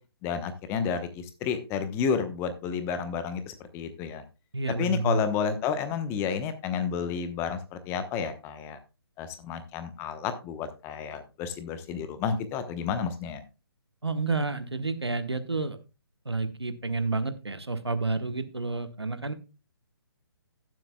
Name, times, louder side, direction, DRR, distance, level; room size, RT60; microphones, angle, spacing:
voice 1, 0.2-4.2 4.8-8.8 9.2-13.4, left 6 dB, 20° left, 10 dB, 1.0 m, -31 dB
voice 2, 4.5-5.2 14.0-15.8 16.2-19.3, right 3 dB, 85° right, 11 dB, 1.2 m, -30 dB
15.5 x 7.6 x 2.2 m, 0.29 s
figure-of-eight pair, 140°, 13 cm